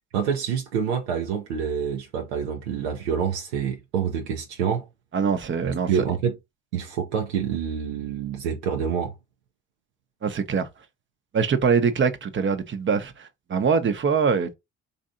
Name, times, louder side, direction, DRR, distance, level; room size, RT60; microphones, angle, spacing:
voice 1, 0.1-4.9 5.9-6.4 6.7-9.1, right 7 dB, 90° right, 0.6 m, -27 dB
voice 2, 5.1-5.9 10.2-10.7 11.3-14.5, right 5 dB, 40° right, 0.8 m, -23 dB
3.3 x 2.7 x 2.5 m
hypercardioid pair, 55°, 31 cm